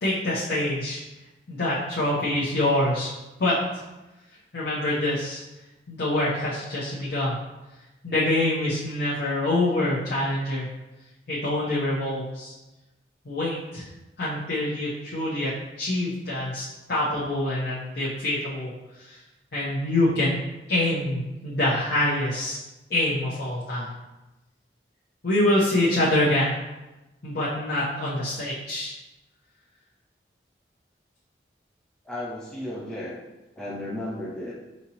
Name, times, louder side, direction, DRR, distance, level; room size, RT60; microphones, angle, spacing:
voice 1, 0.0-1.0 1.5-3.1 3.4-3.8 4.5-5.4 5.9-7.4 8.0-10.7 11.3-12.5 13.3-13.8 14.2-18.7 19.5-20.4 20.7-22.6 22.9-23.9 25.2-26.6 27.2-28.9, left 1 dB, 60° left, -8 dB, 0.8 m, -25 dB
voice 2, 32.1-33.2 33.6-34.5, left 1 dB, 5° left, -5 dB, 0.3 m, -34 dB
5.2 x 2.8 x 2.8 m, 1.0 s
head